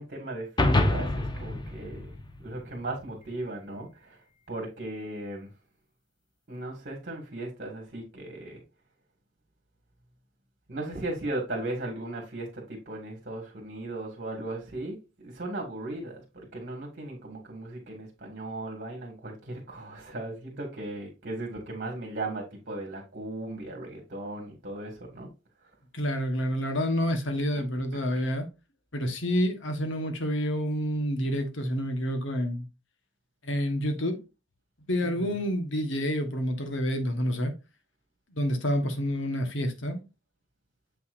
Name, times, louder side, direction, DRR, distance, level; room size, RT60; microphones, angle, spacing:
voice 1, 0.0-5.5 6.5-8.6 10.7-25.3 28.1-28.2 35.0-35.3, right 2 dB, 50° right, 2.1 m, -37 dB
sound 1, 0.6-3.1, left 1 dB, 25° left, 1.0 m, -27 dB
voice 2, 25.9-28.5 28.9-32.6 33.4-34.2 34.9-37.5 38.3-40.0, equal, 65° left, 1.4 m, -28 dB
7.5 x 5.8 x 2.6 m
head